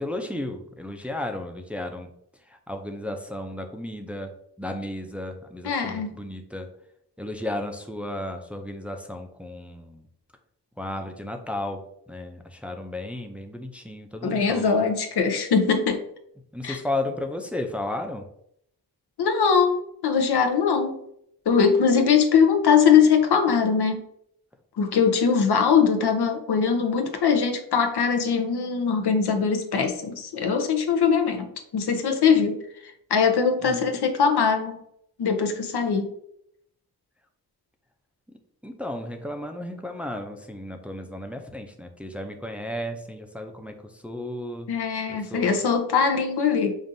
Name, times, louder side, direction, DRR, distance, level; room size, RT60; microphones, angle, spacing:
voice 1, 0.0-2.1 2.5-6.7 7.2-10.0 10.8-14.8 16.5-18.3 33.6-33.8 38.6-44.7 45.1-45.6, left 1 dB, 5° right, 4 dB, 0.4 m, -34 dB
voice 2, 5.6-6.1 14.2-16.0 16.6-16.8 19.2-21.0 21.5-24.0 24.8-34.8 35.2-36.1 44.7-46.8, left 6 dB, 80° left, 6 dB, 0.7 m, -21 dB
5.1 x 2.5 x 2.6 m, 0.72 s
cardioid pair, 60°, 39 cm